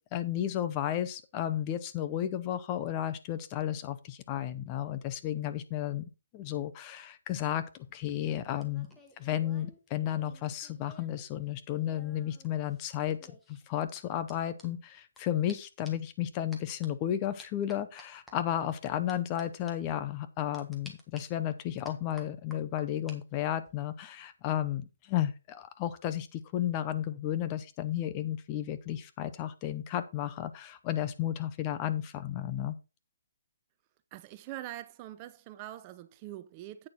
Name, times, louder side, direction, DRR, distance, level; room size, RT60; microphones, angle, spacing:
voice 1, 0.1-7.6 7.9-8.9 9.2-32.7, left 11 dB, 25° left, 0.7 m, -33 dB
sound 1, 7.8-11.2 11.5-15.2 15.5-15.6 15.8-16.1 16.5-16.9 17.4-18.3 19.1-19.4 19.7-19.8 20.5-21.2 21.8-23.2 23.5-23.9, left 1 dB, 5° left, 1.4 m, -54 dB
voice 2, 34.1-36.9, right 14 dB, 25° right, 0.6 m, -43 dB
8.7 x 6.5 x 4.4 m
hypercardioid pair, 160°, 0 cm